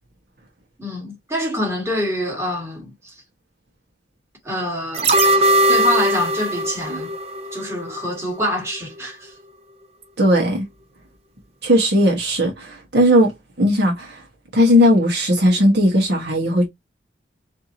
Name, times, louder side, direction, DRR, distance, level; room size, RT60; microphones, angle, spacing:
voice 1, 0.8-3.1 4.4-5.2 5.7-7.1 7.5-9.3, left 1 dB, 15° right, 1.8 m, -25 dB
sound 1, 4.9-8.1 8.4-8.5, right 1 dB, 35° right, 0.6 m, -19 dB
voice 2, 10.2-10.7 11.6-13.3 13.6-14.2 14.5-16.7, equal, 60° right, 1.3 m, -17 dB
4.5 x 2.8 x 2.8 m
head